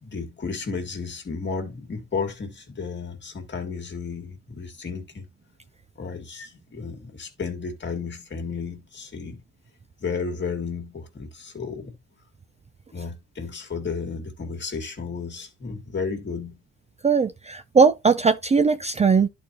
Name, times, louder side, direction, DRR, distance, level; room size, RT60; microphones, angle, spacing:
voice 1, 0.0-5.2 6.0-9.4 10.0-12.0 12.9-16.6, left 5 dB, 35° left, 2.0 m, -33 dB
voice 2, 17.0-19.3, right 5 dB, 20° right, 0.5 m, -19 dB
11.0 x 4.4 x 2.9 m
cardioid pair, 90°, 30 cm